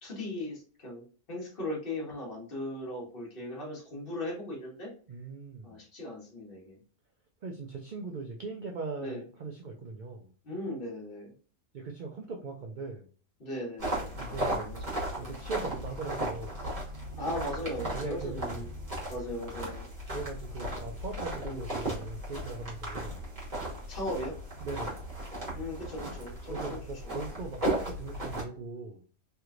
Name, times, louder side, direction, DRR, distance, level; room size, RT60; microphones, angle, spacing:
voice 1, 0.0-4.9 5.6-6.8 9.0-9.2 10.4-11.3 13.4-15.4 17.1-18.7 19.1-19.9 21.4-21.7 23.6-24.3 25.5-26.8 27.0-27.2, left 1 dB, 45° left, -4 dB, 1.6 m, -38 dB
voice 2, 5.1-5.8 7.4-10.3 11.7-13.1 14.2-14.8 15.2-16.6 17.9-18.7 20.1-23.2 24.6-25.0 26.5-29.0, right 4 dB, 70° right, 1 dB, 0.4 m, -40 dB
sound 1, 13.8-28.4, right 1 dB, 35° right, 1.3 m, -36 dB
3.3 x 2.9 x 2.4 m, 0.41 s
omnidirectional pair, 1.4 m